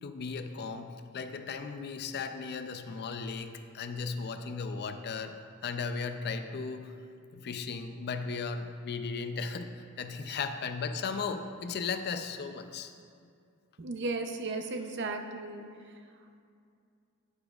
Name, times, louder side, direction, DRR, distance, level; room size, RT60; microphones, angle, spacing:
voice 1, 0.0-5.3 5.6-6.9 7.3-9.7 10.0-12.9, left 5 dB, 50° left, 8 dB, 0.5 m, -36 dB
voice 2, 13.8-15.6, right 3 dB, 55° right, 6 dB, 0.6 m, -35 dB
9.9 x 9.7 x 2.4 m, 2.4 s
head